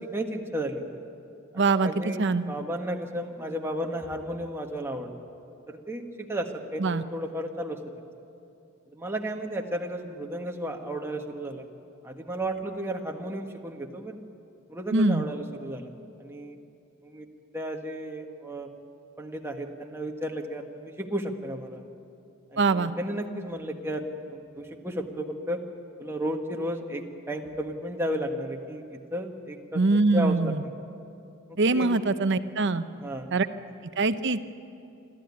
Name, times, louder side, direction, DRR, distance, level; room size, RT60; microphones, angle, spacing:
voice 1, 0.1-0.8 1.8-5.1 5.7-7.8 8.9-11.7 12.0-14.2 14.7-15.9 16.2-16.6 17.0-17.2 17.5-18.7 19.2-21.8 22.5-25.6 26.0-29.8 30.1-30.6 31.7-31.9 33.0-33.3, right 1 dB, 10° right, 2 dB, 1.5 m, -33 dB
voice 2, 1.5-1.9 2.2-2.4 6.8-7.0 14.9-15.2 22.6-22.9 29.7-30.6 31.6-32.8 33.3-33.5 34.0-34.5, right 3 dB, 55° right, 11 dB, 0.8 m, -23 dB
27.0 x 13.0 x 9.7 m, 2.6 s
head